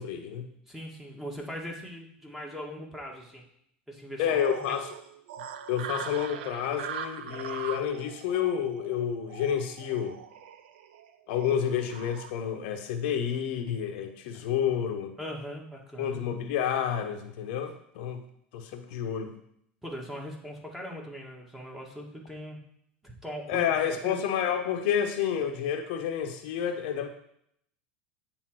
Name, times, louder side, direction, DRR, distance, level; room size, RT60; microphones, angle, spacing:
voice 1, 0.0-0.5 4.2-4.9 5.7-10.2 11.3-15.1 16.0-18.2 18.5-19.3 23.5-27.1, left 8 dB, 65° left, 5 dB, 1.0 m, -29 dB
voice 2, 0.7-3.4 3.9-4.8 14.3-14.4 15.2-16.2 19.8-22.6 23.0-24.2, equal, 5° right, -1 dB, 2.0 m, -40 dB
sound 1, 4.2-12.3, right 8 dB, 75° right, 0.6 m, -41 dB
8.1 x 3.6 x 6.2 m, 0.71 s
hypercardioid pair, 90°, 6 cm